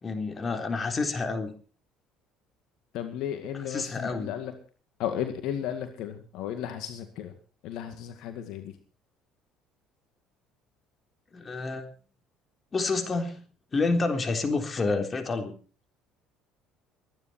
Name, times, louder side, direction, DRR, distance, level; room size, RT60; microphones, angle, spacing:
voice 1, 0.0-1.5 3.5-4.3 11.3-11.9 12.7-13.4 13.7-15.5, left 3 dB, 30° left, 6 dB, 3.7 m, -29 dB
voice 2, 2.9-4.5 5.0-7.3 7.6-8.7, left 10 dB, 70° left, 7 dB, 2.1 m, -34 dB
23.5 x 10.5 x 4.4 m, 0.38 s
supercardioid pair, 75°, 0 cm